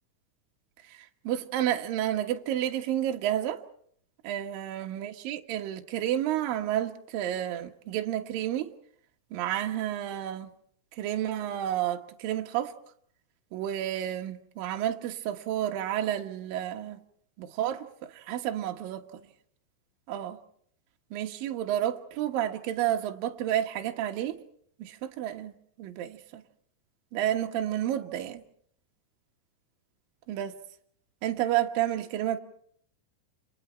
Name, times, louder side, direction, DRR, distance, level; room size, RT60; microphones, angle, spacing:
voice 1, 0.9-3.6 4.2-8.7 9.3-10.5 10.9-12.7 13.5-17.0 17.4-19.2 20.1-20.4 21.1-24.4 24.8-25.5 25.8-26.4 27.1-28.4 30.3-30.6 31.2-32.4, right 12 dB, 65° right, 2.5 m, -30 dB
29.5 x 27.0 x 4.4 m
omnidirectional pair, 5.6 m